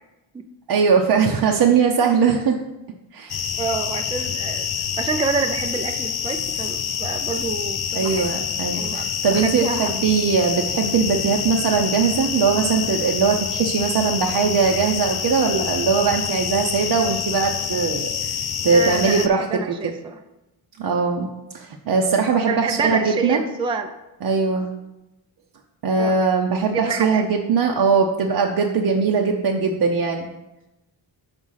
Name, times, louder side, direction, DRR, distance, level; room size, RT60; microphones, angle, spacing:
voice 1, 0.7-2.6 3.1-3.4 7.9-19.9 20.8-23.4 24.2-24.7 25.8-30.3, right 5 dB, 55° right, 1 dB, 0.7 m, -20 dB
sound 1, 3.3-19.3, left 8 dB, 55° left, 0.5 m, -27 dB
voice 2, 3.6-8.3 8.7-9.9 18.7-20.2 22.5-23.9 26.0-26.2 26.7-27.2, right 4 dB, 10° right, 6 dB, 0.3 m, -28 dB
5.2 x 4.8 x 5.6 m, 0.98 s
cardioid pair, 100°, 48 cm